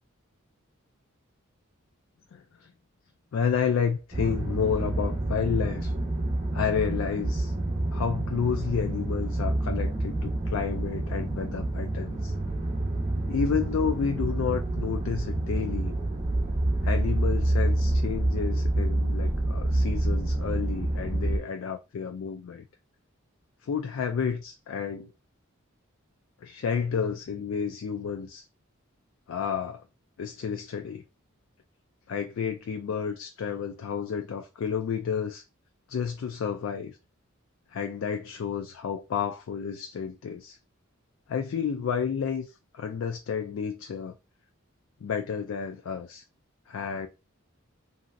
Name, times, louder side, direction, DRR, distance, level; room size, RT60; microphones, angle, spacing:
voice 1, 2.3-2.7 3.3-5.9 6.5-7.5 7.9-12.3 13.3-15.9 16.8-22.6 23.6-25.1 26.4-28.4 29.3-29.8 30.2-31.0 32.1-35.4 35.9-37.0 37.7-40.6 41.3-44.2 45.0-46.2 46.7-47.1, left 7 dB, 70° left, 0.3 m, -31 dB
sound 1, 4.1-21.4, right 1 dB, 30° right, 0.7 m, -28 dB
2.9 x 2.6 x 2.5 m
head